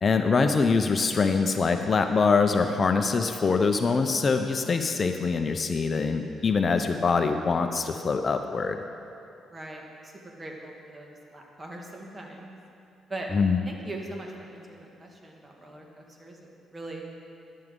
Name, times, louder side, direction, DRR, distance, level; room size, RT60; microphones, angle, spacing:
voice 1, 0.0-8.8 13.3-13.6, left 4 dB, 40° left, 6 dB, 0.6 m, -24 dB
voice 2, 9.5-12.6 13.1-13.4 13.6-17.0, right 1 dB, 25° right, 0 dB, 1.8 m, -41 dB
13.0 x 11.0 x 3.8 m, 2.8 s
cardioid pair, 90°, 0 cm